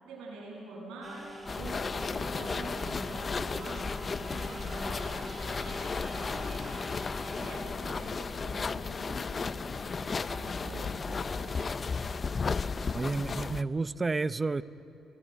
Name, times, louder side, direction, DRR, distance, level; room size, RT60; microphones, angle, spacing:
voice 1, 0.0-1.3 1.5-7.0 7.4-11.2, right 2 dB, 90° right, -4 dB, 7.8 m, -46 dB
sound 1, 1.0-7.5, right 1 dB, 5° right, 5.6 m, -45 dB
sound 2, 1.5-13.6, left 4 dB, 35° left, 0.6 m, -34 dB
sound 3, 4.3-9.4 10.3-11.7, right 4 dB, 50° right, 3.7 m, -49 dB
voice 2, 12.9-14.6, right 3 dB, 25° right, 15 dB, 0.7 m, -30 dB
30.0 x 20.5 x 8.0 m, 2.9 s
cardioid pair, 90°, 0 cm